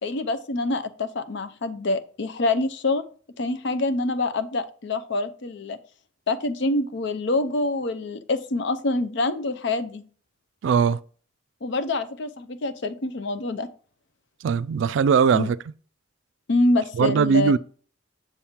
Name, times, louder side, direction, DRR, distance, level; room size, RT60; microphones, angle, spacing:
voice 1, 0.0-3.0 3.4-5.8 6.3-10.1 11.6-13.7 15.3-15.5 16.5-17.5, left 2 dB, 65° left, 0.6 m, -26 dB
voice 2, 10.6-11.0 14.4-15.6 17.0-17.6, right 6 dB, 75° right, 0.3 m, -20 dB
6.8 x 4.3 x 3.6 m
head